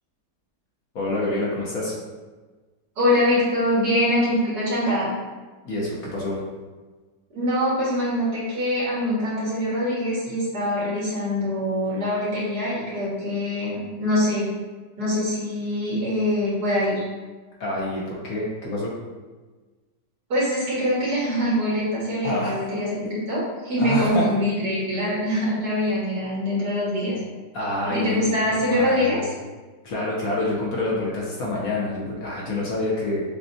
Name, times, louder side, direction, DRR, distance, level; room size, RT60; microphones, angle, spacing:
voice 1, 0.9-1.9 5.6-6.4 17.6-18.9 22.2-22.6 23.8-24.2 27.5-29.3 29.8-33.2, left 2 dB, 60° left, -5 dB, 1.1 m, -27 dB
voice 2, 3.0-5.1 7.3-14.5 15.0-17.0 20.3-27.2 27.9-29.2, left 1 dB, 65° right, -7 dB, 2.1 m, -24 dB
6.8 x 2.4 x 2.6 m, 1.3 s
omnidirectional pair, 1.9 m